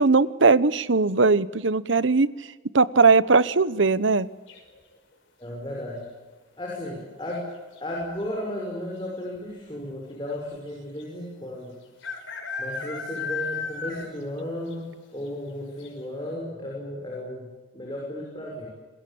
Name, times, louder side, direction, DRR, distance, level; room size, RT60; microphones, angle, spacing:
voice 1, 0.0-2.3 2.7-4.3, right 4 dB, 80° right, 17 dB, 1.0 m, -19 dB
sound 1, 4.5-5.0 6.8-7.2 7.4-7.5 7.7-8.3 9.0-9.1 9.4-9.5 11.0-11.1 12.0-14.3 14.7-14.8 15.3-15.4 15.8-15.9, left 5 dB, 85° left, 5.8 m, -34 dB
voice 2, 5.4-6.0 6.6-7.5 7.8-11.8 12.6-14.9 15.1-18.7, left 1 dB, 25° left, -2 dB, 6.3 m, -34 dB
27.5 x 21.0 x 8.7 m, 1.3 s
head